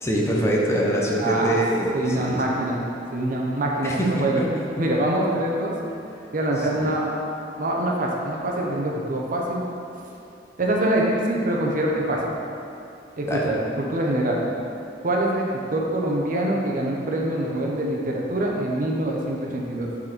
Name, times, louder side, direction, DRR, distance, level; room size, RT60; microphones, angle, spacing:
voice 1, 0.0-2.4 3.8-4.2 6.8-6.9 13.3-13.4, right 1 dB, 15° left, -3 dB, 0.7 m, -24 dB
voice 2, 1.2-1.5 1.9-2.8 3.1-4.4 4.8-5.8 6.3-7.0 7.6-9.6 10.6-12.3 13.2-14.4 15.0-19.9, right 1 dB, 50° right, -2 dB, 0.8 m, -24 dB
6.6 x 4.1 x 4.4 m, 2.6 s
head